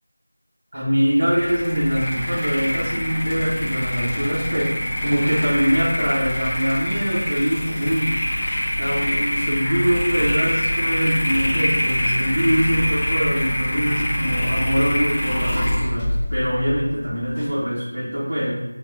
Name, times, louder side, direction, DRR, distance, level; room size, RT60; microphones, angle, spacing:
voice 1, 0.7-18.6, equal, 50° right, -9 dB, 1.3 m, -23 dB
sound 1, 1.2-17.5, equal, 10° left, 0.4 m, -25 dB
3.6 x 2.7 x 4.7 m, 1.1 s
figure-of-eight pair, 175°, 0 cm